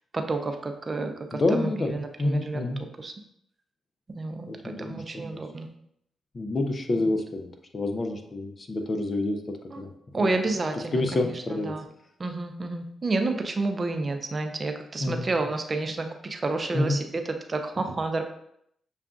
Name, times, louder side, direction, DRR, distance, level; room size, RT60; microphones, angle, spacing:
voice 1, 0.1-2.6 3.0-3.1 4.1-5.7 9.7-9.8 10.1-11.2 11.6-11.9 12.2-18.2, right 3 dB, 40° right, 5 dB, 0.5 m, -30 dB
voice 2, 1.3-1.9 2.2-2.8 4.5-5.2 6.3-9.4 9.8-9.9 10.2-10.3 10.9-11.7 15.0-15.2 16.7-17.0, left 2 dB, 45° left, 5 dB, 0.6 m, -28 dB
6.7 x 2.4 x 2.5 m, 0.72 s
supercardioid pair, 50°, 0 cm